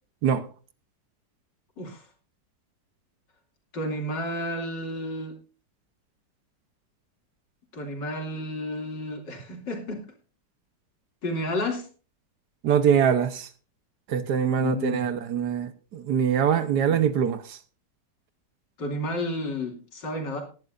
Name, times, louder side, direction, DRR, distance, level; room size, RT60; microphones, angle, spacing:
voice 1, 3.7-5.3 7.7-10.0 11.2-11.9 14.5-15.1 16.6-17.0 18.8-20.4, left 1 dB, 85° left, 3.4 m, -31 dB
voice 2, 12.6-13.5 14.1-17.6, right 8 dB, 70° right, 1.5 m, -23 dB
19.0 x 10.5 x 2.5 m
omnidirectional pair, 1.9 m